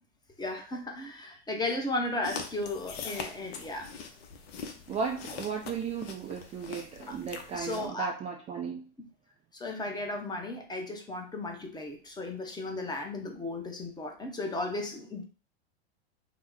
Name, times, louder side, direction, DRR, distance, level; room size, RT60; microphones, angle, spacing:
voice 1, 0.4-3.9 7.1-7.2 7.5-8.1 9.5-15.2, left 2 dB, 15° left, 2 dB, 0.7 m, -35 dB
sound 1, 2.2-7.9, left 5 dB, 70° left, 0.6 m, -42 dB
voice 2, 4.9-8.9, right 6 dB, 20° right, 1 dB, 0.4 m, -35 dB
2.8 x 2.1 x 3.7 m, 0.37 s
hypercardioid pair, 95°, 32 cm